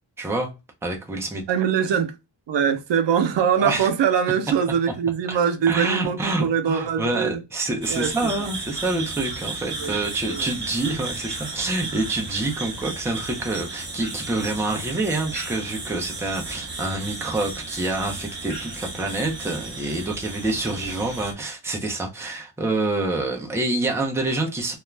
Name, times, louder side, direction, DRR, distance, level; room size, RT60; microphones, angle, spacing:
voice 1, 0.2-0.5 0.8-1.4 3.6-3.9 5.3-5.4 5.7-24.7, right 2 dB, 5° right, 0.4 m, -27 dB
voice 2, 1.5-2.1 2.5-7.4 7.9-8.5 9.8-10.5, right 7 dB, 85° right, 0.5 m, -23 dB
sound 1, 7.8-21.3, right 3 dB, 25° right, 0.9 m, -34 dB
2.4 x 2.1 x 3.1 m
wide cardioid pair, 170°, 43 cm